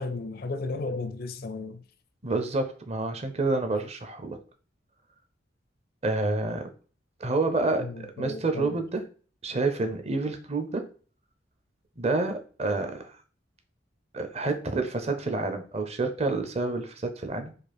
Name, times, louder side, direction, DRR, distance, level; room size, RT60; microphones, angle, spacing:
voice 1, 0.0-1.8 7.8-8.8, left 3 dB, 55° left, 0.4 m, -34 dB
voice 2, 2.2-4.4 6.0-6.7 7.2-9.0 9.4-10.8 12.0-13.1 14.1-17.5, right 3 dB, 35° right, 0.7 m, -28 dB
4.9 x 2.5 x 4.3 m
head